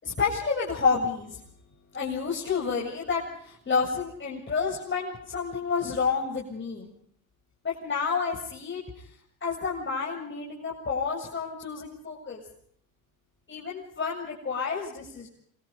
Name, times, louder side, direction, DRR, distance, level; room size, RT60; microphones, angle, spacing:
voice 1, 0.0-1.4 1.9-6.9 7.6-8.8 9.4-12.4 13.5-15.3, left 5 dB, 25° left, -3 dB, 8.0 m, -29 dB
27.0 x 23.0 x 5.3 m, 0.66 s
hypercardioid pair, 75°, 42 cm